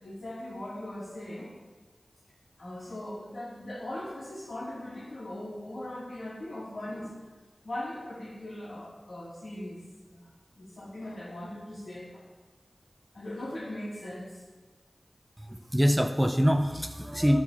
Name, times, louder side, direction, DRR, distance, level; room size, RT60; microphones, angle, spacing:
voice 1, 0.0-1.5 2.6-7.2 7.6-9.8 10.1-10.2 10.6-12.3 13.1-14.4, left 1 dB, 75° left, -4 dB, 2.6 m, -39 dB
voice 2, 15.4-17.4, equal, 10° right, 6 dB, 0.7 m, -25 dB
12.5 x 4.7 x 5.6 m, 1.3 s
cardioid pair, 40°, 0 cm